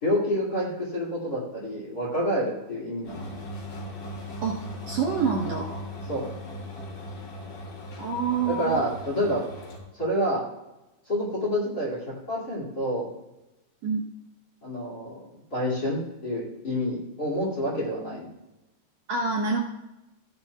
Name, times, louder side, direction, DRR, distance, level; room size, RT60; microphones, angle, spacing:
voice 1, 0.0-3.3 6.1-6.3 8.4-9.4 9.9-10.4 11.1-13.1 14.6-18.3, equal, 30° left, -5 dB, 2.6 m, -28 dB
sound 1, 3.0-9.8, left 1 dB, 80° left, 4.7 m, -38 dB
voice 2, 4.9-5.8 8.0-8.8 13.8-14.0 19.1-19.6, right 5 dB, 65° right, -2 dB, 1.8 m, -26 dB
15.0 x 9.9 x 2.4 m, 0.97 s
omnidirectional pair, 3.9 m